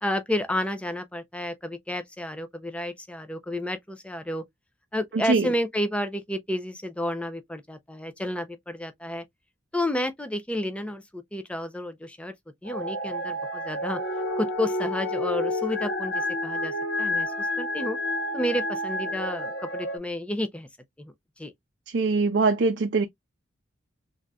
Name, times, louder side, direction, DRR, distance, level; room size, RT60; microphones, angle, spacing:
voice 1, 0.0-4.4 4.9-9.2 9.7-12.3 12.6-14.0 14.4-18.0 18.3-20.7 21.0-21.5, left 1 dB, 5° left, 0.5 m, -31 dB
sound 1, 12.6-20.0, left 1 dB, 65° left, 1.3 m, -30 dB
voice 2, 21.9-23.1, right 4 dB, 60° right, 0.5 m, -22 dB
3.7 x 2.6 x 2.2 m
head